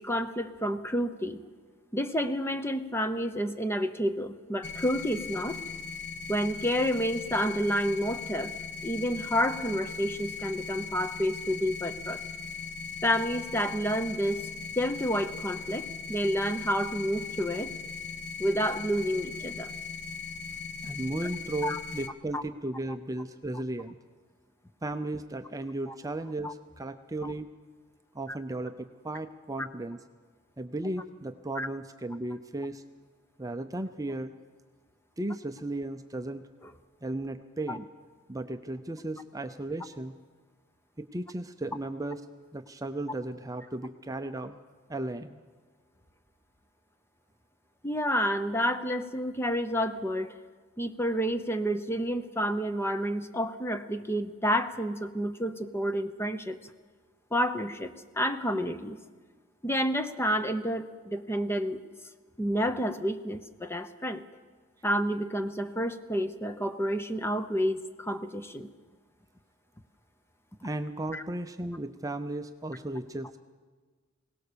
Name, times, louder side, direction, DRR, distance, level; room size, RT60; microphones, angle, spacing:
voice 1, 0.0-1.4 1.9-5.6 6.3-8.5 8.8-12.2 13.0-14.4 14.8-17.7 18.4-19.7 21.6-21.8 22.3-22.4 25.9-26.0 26.4-26.5 27.2-27.3 29.6-29.7 31.6-31.7 37.7-37.8 47.8-50.3 50.8-56.6 57.3-57.9 58.2-59.0 59.6-61.8 62.4-64.2 64.8-68.7 71.1-71.2, equal, 10° left, 10 dB, 0.8 m, -29 dB
sound 1, 4.6-22.1, left 5 dB, 60° left, 1.2 m, -39 dB
voice 2, 20.8-24.0 24.8-27.5 28.1-30.0 30.6-32.8 33.4-34.3 35.2-36.4 37.0-37.9 38.3-40.1 41.0-42.2 42.5-44.6 44.9-45.4 70.6-73.4, right 2 dB, 15° right, 7 dB, 0.6 m, -35 dB
21.5 x 18.0 x 6.9 m, 1.4 s
head